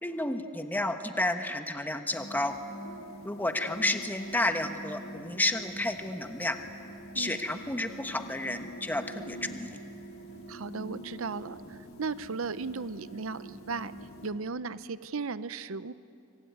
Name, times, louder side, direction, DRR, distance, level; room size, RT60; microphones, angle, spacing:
voice 1, 0.0-2.6 3.2-6.6 7.1-9.8, left 1 dB, 10° left, 6 dB, 1.2 m, -31 dB
sound 1, 2.1-14.3, right 1 dB, 80° left, 4.6 m, -45 dB
voice 2, 10.5-13.9 14.2-15.9, right 4 dB, 70° right, 14 dB, 0.7 m, -36 dB
25.5 x 24.5 x 9.5 m, 2.6 s
head